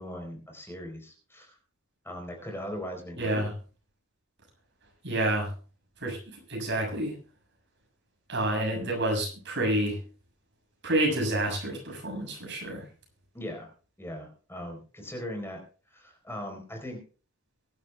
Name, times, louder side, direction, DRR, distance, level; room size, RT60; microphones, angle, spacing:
voice 1, 0.0-1.6 2.0-3.4 13.3-13.7 14.0-15.6 15.9-17.0, equal, 10° left, 3 dB, 4.2 m, -39 dB
voice 2, 3.2-3.5 5.0-5.5 6.0-7.2 8.3-10.0 10.8-12.8, right 1 dB, 55° right, 2 dB, 7.0 m, -28 dB
23.0 x 11.5 x 2.3 m, 0.37 s
head